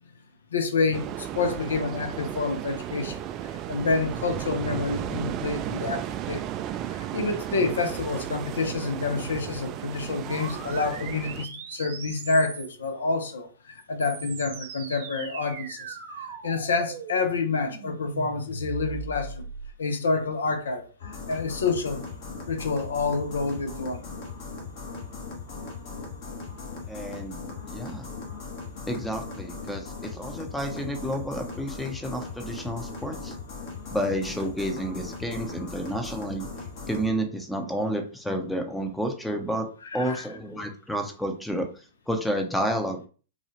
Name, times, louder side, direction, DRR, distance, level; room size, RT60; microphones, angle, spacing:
voice 1, 0.5-6.4 6.9-19.4 19.8-22.1 22.5-24.1 39.8-40.3, left 4 dB, 75° left, 0.6 m, -28 dB
sound 1, 0.9-11.5, right 11 dB, 35° right, 0.3 m, -34 dB
sound 2, 10.2-12.9 13.8-19.7, right 6 dB, 50° right, 0.8 m, -39 dB
sound 3, 21.0-37.1, left 4 dB, 50° left, 1.2 m, -39 dB
voice 2, 26.9-27.4 27.7-28.1 28.9-33.3 33.9-36.5 36.9-39.7 39.9-41.7 42.1-43.0, equal, 5° left, 0.6 m, -30 dB
3.9 x 2.3 x 2.9 m
figure-of-eight pair, 105°, 0 cm